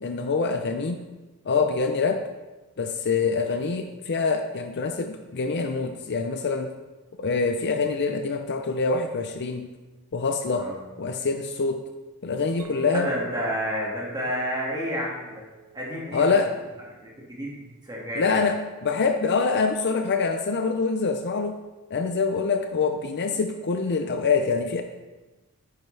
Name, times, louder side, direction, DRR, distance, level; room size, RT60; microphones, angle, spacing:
voice 1, 0.0-1.0 1.5-2.2 2.8-6.7 7.2-9.7 10.1-10.7 11.0-11.8 12.2-13.1 16.1-16.5 18.2-21.6 21.9-24.8, left 4 dB, 50° left, 6 dB, 0.6 m, -25 dB
Chink clink, 12.6-17.1, right 9 dB, 70° right, 0.7 m, -45 dB
voice 2, 12.9-15.4 15.7-16.3 17.0-18.4, equal, 20° right, -4 dB, 2.0 m, -30 dB
9.8 x 8.9 x 3.3 m, 1.2 s
head